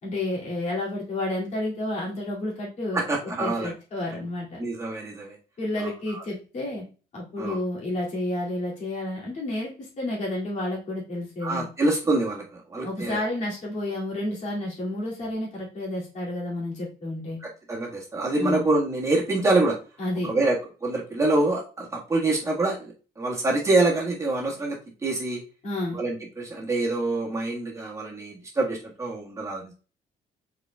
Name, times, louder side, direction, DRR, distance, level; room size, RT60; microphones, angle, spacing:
voice 1, 0.0-3.0 3.4-4.6 5.6-6.8 7.1-11.7 12.8-17.4 18.4-18.6 20.0-20.3 25.6-26.0, left 1 dB, 45° left, -5 dB, 2.4 m, -30 dB
voice 2, 2.9-3.7 4.6-5.4 5.8-6.2 7.4-7.6 11.4-13.2 17.4-19.8 20.2-20.6 20.8-25.4 25.9-29.7, right 2 dB, 15° right, -4 dB, 1.5 m, -26 dB
4.9 x 4.7 x 2.3 m, 0.35 s
cardioid pair, 110°, 17 cm